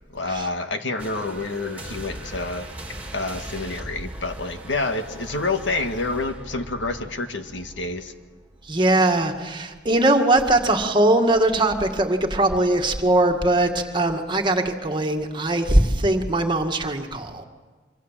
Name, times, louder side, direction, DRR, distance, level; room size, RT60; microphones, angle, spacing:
voice 1, 0.1-2.7 3.1-8.1, left 3 dB, 90° left, 6 dB, 1.8 m, -28 dB
sound 1, 1.0-9.1 9.5-9.8, right 1 dB, 10° right, 3.5 m, -39 dB
voice 2, 8.7-17.4, right 1 dB, 25° right, 3 dB, 2.0 m, -20 dB
26.0 x 24.5 x 7.5 m, 1.4 s
head